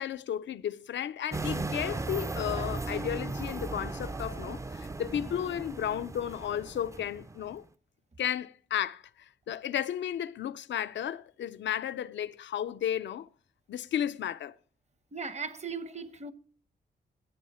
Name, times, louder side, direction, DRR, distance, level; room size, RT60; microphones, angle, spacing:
voice 1, 0.0-7.6 8.2-13.3 13.7-14.5, left 10 dB, 90° left, 0.5 m, -33 dB
sound 1, 1.3-7.6, right 3 dB, 15° right, 0.4 m, -36 dB
voice 2, 15.1-16.3, right 5 dB, 40° right, 0.9 m, -37 dB
15.0 x 8.5 x 4.3 m
cardioid pair, 65°, 18 cm